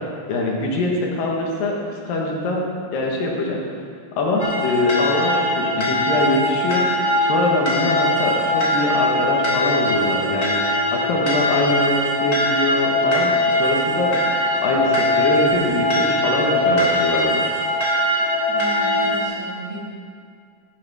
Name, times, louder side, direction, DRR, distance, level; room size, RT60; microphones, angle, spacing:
voice 1, 0.0-2.6 2.9-3.6 4.2-14.1 14.6-17.5, left 2 dB, 80° left, -1 dB, 3.1 m, -23 dB
sound 1, 4.4-19.2, left 1 dB, 50° left, 1.0 m, -21 dB
voice 2, 18.5-19.8, right 2 dB, 35° right, -8 dB, 2.9 m, -34 dB
13.0 x 6.7 x 4.8 m, 2.2 s
omnidirectional pair, 3.9 m